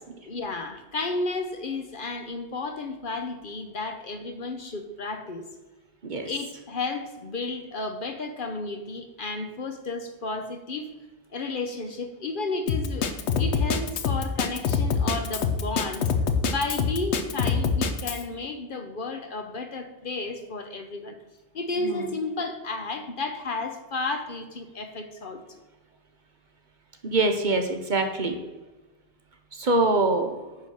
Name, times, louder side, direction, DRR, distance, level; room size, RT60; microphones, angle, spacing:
voice 1, 0.2-5.4 6.2-10.9 11.3-16.1 16.4-21.2 21.5-25.4, left 3 dB, 50° left, 6 dB, 1.0 m, -32 dB
Drum kit, 12.7-18.2, left 5 dB, 80° left, 1.0 m, -25 dB
voice 2, 27.0-28.4 29.5-30.4, right 2 dB, 45° right, 5 dB, 0.9 m, -24 dB
9.4 x 3.8 x 6.3 m, 1.1 s
omnidirectional pair, 1.1 m